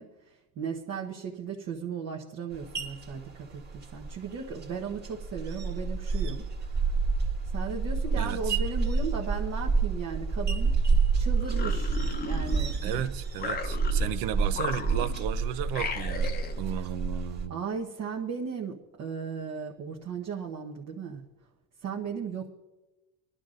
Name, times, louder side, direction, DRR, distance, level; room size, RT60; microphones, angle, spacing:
voice 1, 0.0-6.4 7.5-10.8 11.1-13.0 16.6-16.9 17.5-21.2 21.8-22.5, right 6 dB, 50° right, 1.2 m, -36 dB
sound 1, 2.5-17.4, right 4 dB, 30° right, 1.9 m, -29 dB
voice 2, 8.1-8.6 12.8-17.6, right 10 dB, 75° right, 0.8 m, -34 dB
sound 2, 11.4-12.9 13.4-14.2 14.5-15.3 15.7-16.6, left 5 dB, 25° left, 0.8 m, -36 dB
22.0 x 11.5 x 2.6 m
cardioid pair, 135°, 34 cm